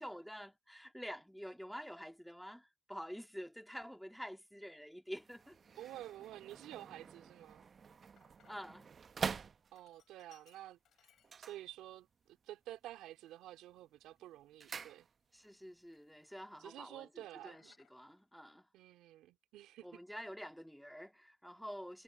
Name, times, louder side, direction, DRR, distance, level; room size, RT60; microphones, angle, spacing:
voice 1, 0.0-5.6 8.5-8.9 15.3-18.7 19.8-22.0, equal, ahead, 2.0 m, -48 dB
Sink (filling or washing), 3.6-3.8 4.5-5.0 5.4-5.5 5.8-8.9 9.2-11.8 12.2-12.3 13.0-15.6 15.9-16.6 16.9-18.3, left 9 dB, 60° left, 6.9 m, -73 dB
sound 1, 5.1-10.1 11.2-12.3 12.6-13.1 13.5-15.5 15.8-15.9, right 6 dB, 45° right, 0.9 m, -46 dB
voice 2, 5.8-7.6 9.7-11.1 11.4-15.1 16.6-17.8 18.7-20.0, right 14 dB, 80° right, 2.6 m, -51 dB
supercardioid pair, 70°, 0 cm